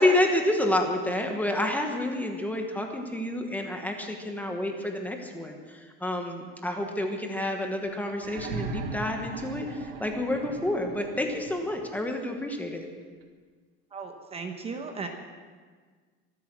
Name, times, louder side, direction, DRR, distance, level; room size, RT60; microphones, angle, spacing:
voice 1, 0.0-12.9, left 1 dB, 5° left, 3 dB, 1.2 m, -29 dB
sound 1, 8.2-12.0 13.2-13.3, right 3 dB, 90° right, 1.8 m, -38 dB
voice 2, 13.9-15.1, right 4 dB, 20° right, 4 dB, 1.1 m, -36 dB
24.5 x 8.4 x 6.1 m, 1.5 s
cardioid pair, 160°, 29 cm